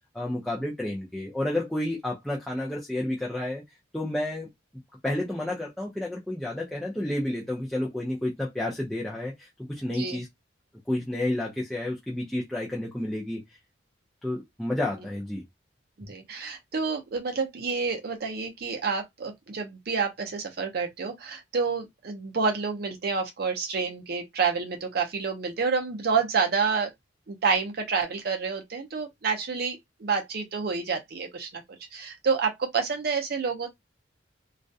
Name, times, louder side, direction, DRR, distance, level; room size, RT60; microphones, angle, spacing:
voice 1, 0.1-3.6 3.9-4.5 5.0-10.3 10.9-13.4 14.2-15.4, left 1 dB, ahead, 0.4 m, -30 dB
voice 2, 16.0-26.9 27.3-31.6 31.9-33.7, right 5 dB, 50° right, 0.5 m, -28 dB
2.3 x 2.1 x 2.5 m
head